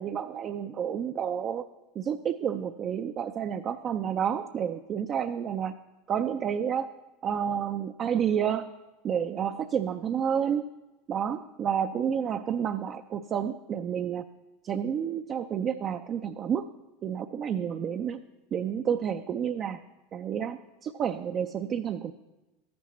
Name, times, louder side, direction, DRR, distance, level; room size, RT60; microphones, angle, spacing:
voice 1, 0.0-1.7 2.0-5.8 6.1-6.9 7.2-8.7 9.0-10.6 11.1-14.3 14.6-16.6 17.0-18.2 18.5-19.8 20.1-22.1, right 8 dB, 40° right, 7 dB, 0.4 m, -30 dB
13.5 x 9.4 x 3.1 m, 1.1 s
hypercardioid pair, 85°, 0 cm